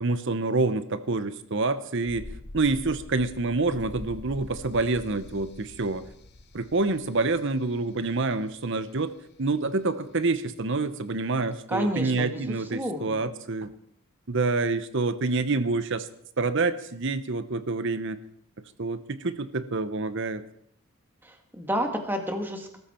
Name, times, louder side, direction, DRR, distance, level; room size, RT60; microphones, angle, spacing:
voice 1, 0.0-2.3 2.5-6.0 6.5-9.1 9.4-13.7 14.3-16.1 16.4-18.2 18.8-20.4, right 3 dB, 55° right, 12 dB, 0.9 m, -27 dB
sound 1, 2.1-8.9 9.2-9.3, left 2 dB, 50° left, 1.3 m, -45 dB
voice 2, 11.7-13.3 21.2-22.8, equal, 10° right, 4 dB, 1.9 m, -30 dB
21.0 x 13.5 x 4.4 m, 0.69 s
head